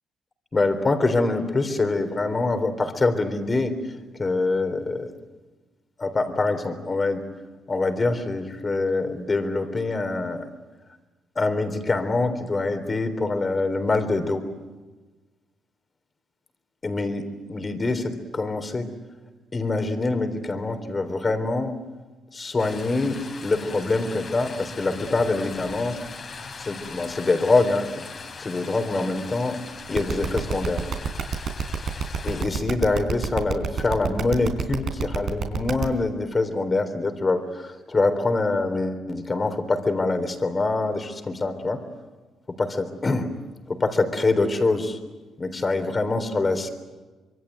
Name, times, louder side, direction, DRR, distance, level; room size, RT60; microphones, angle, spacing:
voice 1, 0.5-3.8 4.2-5.1 6.0-7.2 7.7-10.4 11.4-14.4 16.8-18.9 19.5-21.8 22.3-26.0 26.7-28.1 28.4-29.6 29.9-30.8 32.2-41.8 42.6-43.3 43.7-45.0 45.4-46.7, left 3 dB, 30° left, 8 dB, 3.7 m, -24 dB
sound 1, 22.6-32.4, left 4 dB, 45° left, 3.9 m, -40 dB
sound 2, 29.9-35.8, right 6 dB, 65° right, 3.8 m, -27 dB
26.0 x 23.0 x 9.4 m, 1.2 s
cardioid pair, 90°, 0 cm